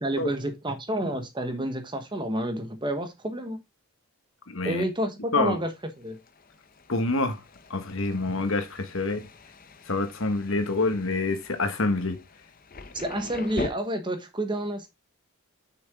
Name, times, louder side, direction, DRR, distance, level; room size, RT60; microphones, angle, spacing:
voice 1, 0.0-3.6 4.6-5.7 6.0-6.2 12.9-14.9, right 1 dB, 20° right, 1.2 m, -29 dB
voice 2, 4.5-4.8 5.3-5.6 6.9-7.4 7.7-9.3 9.9-12.2, left 3 dB, 60° left, 1.5 m, -27 dB
Thunder, 5.5-13.7, left 2 dB, 40° left, 0.8 m, -42 dB
7.4 x 6.1 x 3.6 m
head